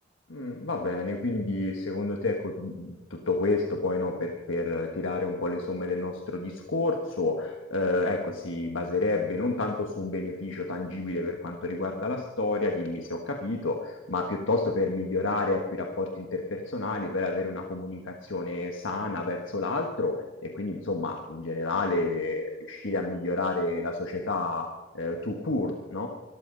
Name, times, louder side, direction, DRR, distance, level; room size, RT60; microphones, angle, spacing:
voice 1, 0.3-26.1, left 2 dB, 70° left, 2 dB, 1.4 m, -30 dB
24.5 x 13.5 x 3.9 m, 1.2 s
head